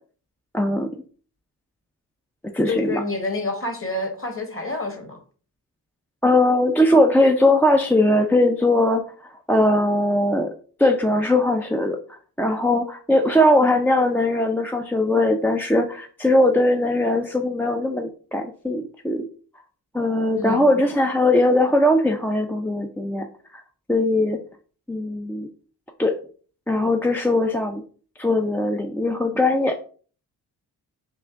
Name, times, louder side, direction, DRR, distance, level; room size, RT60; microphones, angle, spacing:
voice 1, 0.5-0.9 2.5-3.0 6.2-9.0 9.5-10.5 10.8-12.0 12.4-19.2 19.9-23.3 23.9-24.4 24.9-25.5 26.0-26.1 26.7-27.8 28.2-29.8, left 1 dB, 5° left, 0.4 m, -20 dB
voice 2, 2.7-5.2 20.4-20.8, left 2 dB, 30° left, 1.3 m, -28 dB
3.4 x 2.5 x 3.6 m
hypercardioid pair, 40°, 46 cm